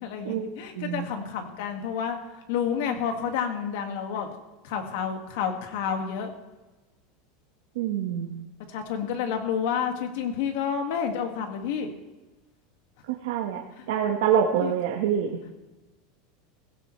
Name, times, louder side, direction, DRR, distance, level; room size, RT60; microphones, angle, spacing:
voice 1, 0.0-2.2 2.5-4.3 4.6-6.3 8.7-11.9 13.8-13.9 14.6-14.7, left 7 dB, 70° left, 4 dB, 2.0 m, -29 dB
voice 2, 0.7-1.1 7.7-8.3 13.1-13.6 13.9-15.3, right 8 dB, 80° right, 1 dB, 1.3 m, -25 dB
17.0 x 16.5 x 3.3 m, 1.1 s
supercardioid pair, 140°, 0 cm